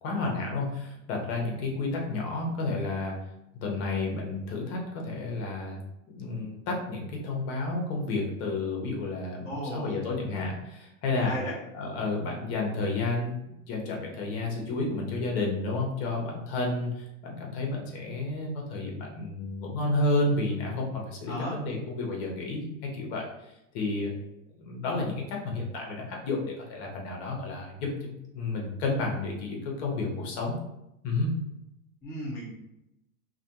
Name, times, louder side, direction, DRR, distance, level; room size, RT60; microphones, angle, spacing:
voice 1, 0.0-3.2 3.6-5.8 6.1-11.4 11.7-22.6 22.9-24.1 24.6-30.5 31.0-31.3, left 2 dB, 50° left, 0 dB, 0.9 m, -31 dB
voice 2, 9.4-10.0 11.1-11.5 21.3-21.5 32.0-32.5, equal, 10° left, -7 dB, 0.5 m, -35 dB
2.4 x 2.2 x 2.8 m, 0.86 s
supercardioid pair, 130°, 42 cm